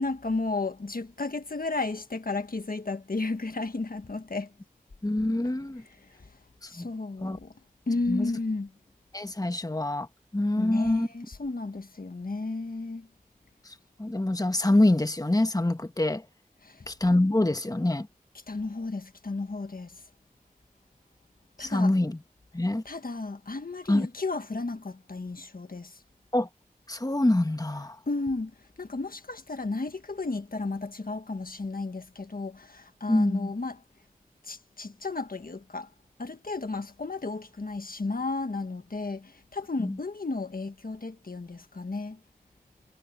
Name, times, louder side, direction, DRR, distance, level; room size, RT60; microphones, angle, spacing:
voice 1, 0.0-4.5 6.7-7.5 7.9-8.7 10.5-13.1 16.6-16.9 18.5-20.0 21.6-21.9 22.8-26.0 28.1-28.5 28.8-33.8 34.4-35.9 36.2-42.2, left 3 dB, 75° left, 1.5 m, -33 dB
voice 2, 5.0-5.8 6.6-6.9 7.2-7.4 8.1-8.3 9.1-10.1 10.3-11.1 13.6-16.2 16.9-18.1 21.6-22.2 22.5-22.8 23.9-24.1 26.3-26.5 26.9-28.0 33.1-33.5 39.8-40.0, left 1 dB, 25° left, 1.4 m, -25 dB
wide cardioid pair, 45°, 15 cm